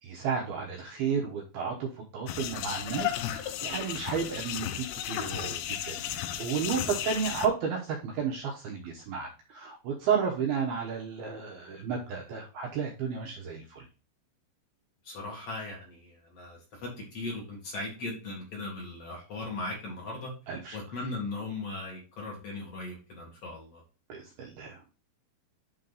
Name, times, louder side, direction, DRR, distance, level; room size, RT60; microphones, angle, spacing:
voice 1, 0.0-13.9 20.5-20.8 24.1-24.8, right 6 dB, 80° right, 0 dB, 2.2 m, -32 dB
sound 1, 2.3-7.5, left 11 dB, 85° left, 2.5 m, -34 dB
voice 2, 15.0-20.3 20.7-23.8, left 2 dB, 45° left, -2 dB, 2.3 m, -38 dB
9.4 x 3.8 x 4.0 m, 0.34 s
omnidirectional pair, 5.7 m